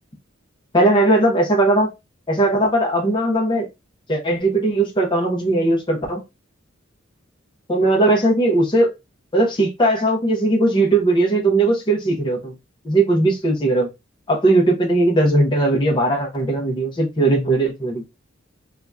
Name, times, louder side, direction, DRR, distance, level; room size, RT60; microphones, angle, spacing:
voice 1, 0.7-1.9 2.3-3.7 4.1-6.2 7.7-8.9 9.3-12.5 12.8-13.9 14.3-18.0, right 2 dB, 25° left, 0.8 m, -18 dB
2.8 x 2.4 x 3.3 m
head